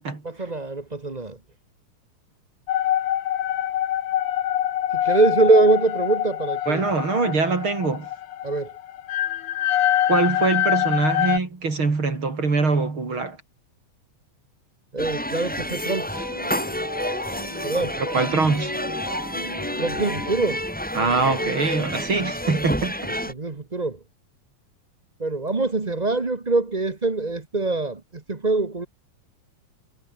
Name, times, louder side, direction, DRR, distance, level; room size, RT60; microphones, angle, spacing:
voice 1, 0.2-1.4 4.9-6.9 8.4-8.7 14.9-16.2 17.6-17.9 19.8-20.6 23.3-24.0 25.2-28.8, right 3 dB, 55° right, 0.4 m, -23 dB
sound 1, 2.7-11.4, left 11 dB, 75° left, 2.8 m, -24 dB
voice 2, 6.7-8.1 10.1-13.4 18.0-18.7 20.9-22.9, right 4 dB, 40° right, 5.1 m, -23 dB
sound 2, 15.0-23.3, equal, 5° left, 2.8 m, -29 dB
sound 3, 16.1-20.8, left 2 dB, 35° left, 8.9 m, -36 dB
omnidirectional pair, 3.6 m